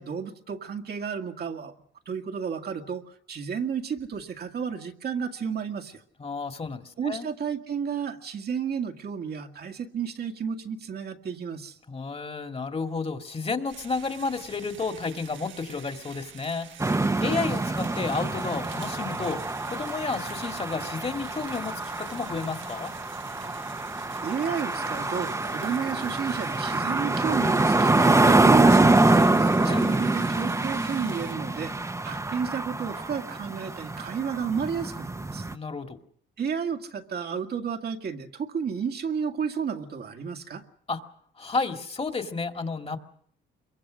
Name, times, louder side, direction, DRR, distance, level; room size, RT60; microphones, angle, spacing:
voice 1, 0.0-1.7 2.1-6.0 7.0-11.8 17.2-17.4 24.2-29.0 29.6-31.8 32.0-35.5 36.4-40.6, right 7 dB, 55° right, 4 dB, 2.0 m, -32 dB
voice 2, 6.2-7.3 11.9-22.9 29.0-29.8 35.5-36.0 40.9-41.0 41.4-43.0, left 4 dB, 30° left, 6 dB, 2.2 m, -32 dB
sound 1, 13.7-31.3, right 9 dB, 75° right, 1.6 m, -48 dB
sound 2, 16.8-35.5, right 2 dB, 15° right, 1.1 m, -25 dB
25.5 x 23.0 x 6.4 m, 0.64 s
cardioid pair, 90°, 20 cm